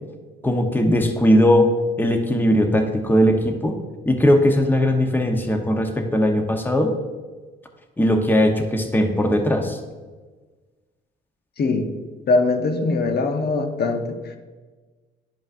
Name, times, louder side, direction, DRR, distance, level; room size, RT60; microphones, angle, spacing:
voice 1, 0.4-1.7 2.0-3.8 4.1-6.9 8.0-9.8, equal, 10° left, 4 dB, 0.9 m, -19 dB
voice 2, 11.6-11.9 12.3-14.4, left 3 dB, 55° left, 6 dB, 0.9 m, -22 dB
11.0 x 5.1 x 2.6 m, 1.3 s
cardioid pair, 90°, 20 cm